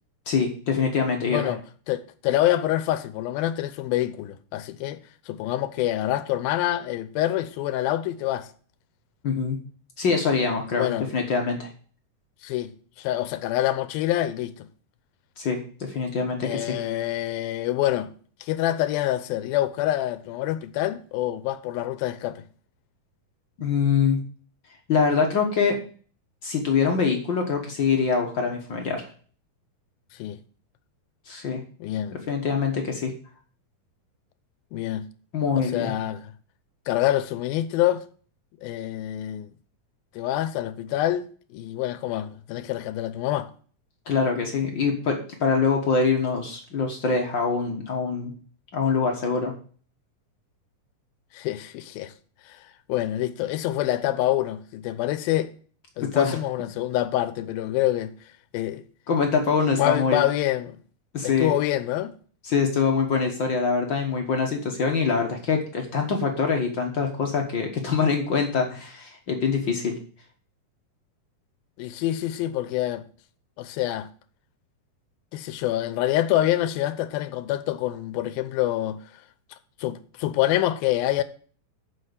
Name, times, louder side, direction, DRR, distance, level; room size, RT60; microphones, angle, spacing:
voice 1, 0.3-1.5 9.2-9.6 10.0-11.7 15.4-16.7 23.6-24.2 24.9-25.8 26.4-29.1 31.3-31.6 32.3-33.1 35.3-35.9 44.1-48.3 48.7-49.5 56.0-56.4 59.1-60.2 61.1-61.5 62.4-70.0, left 5 dB, 60° left, 1.2 m, -24 dB
voice 2, 1.3-1.6 1.9-5.0 5.3-8.5 10.8-11.1 12.4-12.7 13.0-14.7 16.4-18.1 18.4-22.4 30.2-30.4 31.8-32.2 34.7-35.0 35.6-36.3 36.9-38.0 38.6-39.5 40.2-41.2 41.5-43.5 51.3-52.1 52.5-52.6 52.9-55.5 56.0-58.1 58.5-58.8 59.8-60.8 61.2-62.1 71.8-73.0 73.6-74.1 75.3-79.0 79.8-81.2, left 14 dB, 85° left, 2.6 m, -26 dB
7.5 x 6.4 x 8.0 m
omnidirectional pair, 4.1 m